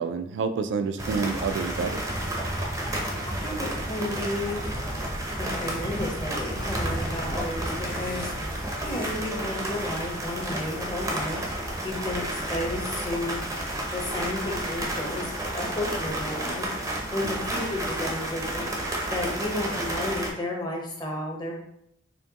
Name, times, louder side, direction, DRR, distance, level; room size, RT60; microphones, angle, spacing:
voice 1, 0.0-2.0 17.2-17.5, right 5 dB, 70° right, 9 dB, 0.3 m, -29 dB
sound 1, 1.0-20.3, right 1 dB, 15° right, 0.6 m, -31 dB
voice 2, 3.3-4.7 5.4-8.3 8.8-11.4 11.8-13.4 13.9-15.3 15.5-16.7 17.1-18.7 19.1-21.6, left 1 dB, 25° left, -1 dB, 0.8 m, -32 dB
sound 2, 4.5-4.9 5.5-6.1 6.7-7.2 7.5-8.4 8.9-9.3 9.6-9.8, left 3 dB, 45° left, 0.6 m, -40 dB
4.3 x 2.9 x 2.9 m, 0.75 s
head